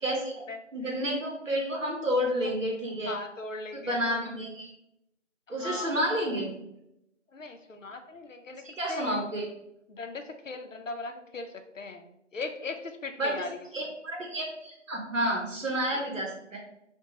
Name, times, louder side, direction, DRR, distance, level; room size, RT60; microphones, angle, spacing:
voice 1, 0.0-0.3 0.7-3.2 3.9-4.7 5.5-6.5 8.8-9.4 13.2-13.4 13.7-16.6, equal, 85° right, -1 dB, 0.8 m, -30 dB
voice 2, 2.1-2.5 3.1-4.0 5.5-6.0 7.3-8.6 8.9-9.3 9.9-12.1 12.3-13.7 15.9-16.0, left 3 dB, 85° left, 6 dB, 0.6 m, -39 dB
2.9 x 2.2 x 3.7 m, 0.83 s
figure-of-eight pair, 175°, 37 cm